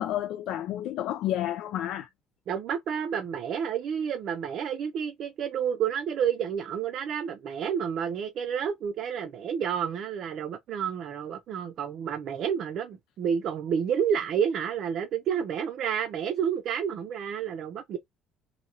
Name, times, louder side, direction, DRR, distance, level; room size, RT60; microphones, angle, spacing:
voice 1, 0.0-2.1, left 12 dB, 70° left, 0.3 m, -30 dB
voice 2, 2.5-18.0, right 8 dB, 55° right, 0.5 m, -30 dB
2.9 x 2.7 x 2.7 m
cardioid pair, 130°, 0 cm